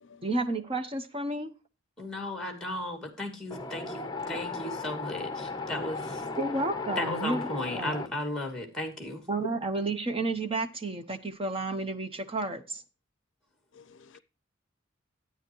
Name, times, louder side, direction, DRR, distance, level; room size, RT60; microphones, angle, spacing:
voice 1, 0.2-1.5 6.4-7.9 9.3-12.8, right 2 dB, 30° right, 0.9 m, -31 dB
voice 2, 2.0-6.2 7.0-9.2, left 1 dB, 5° left, 2.6 m, -35 dB
Wind, 3.5-8.1, left 3 dB, 20° left, 0.9 m, -36 dB
voice 3, 13.8-14.2, left 5 dB, 65° left, 0.5 m, -54 dB
12.5 x 9.4 x 3.0 m
head